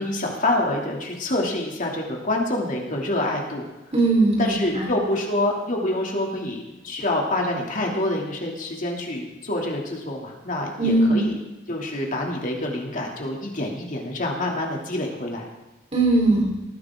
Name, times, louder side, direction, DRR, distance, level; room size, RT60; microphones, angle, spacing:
voice 1, 0.0-3.6 4.4-11.4 11.7-15.4, left 1 dB, 45° left, 0 dB, 2.8 m, -26 dB
voice 2, 3.9-4.9 10.8-11.3 15.9-16.5, right 2 dB, 35° right, -1 dB, 4.3 m, -19 dB
19.0 x 15.5 x 3.8 m, 1.1 s
head